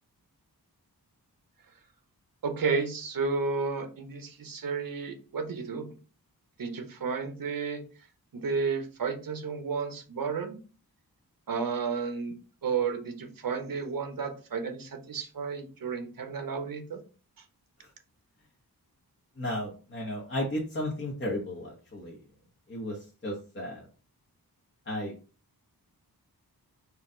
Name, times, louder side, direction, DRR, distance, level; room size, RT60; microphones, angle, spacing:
voice 1, 2.4-5.9 6.6-7.8 8.3-10.6 11.5-12.3 12.6-17.0, right 5 dB, 60° right, 5 dB, 0.8 m, -32 dB
voice 2, 19.4-22.2 22.7-23.0 23.2-23.8 24.9-25.1, left 1 dB, 30° left, -4 dB, 0.9 m, -34 dB
4.1 x 2.4 x 3.7 m, 0.36 s
wide cardioid pair, 120°, 38 cm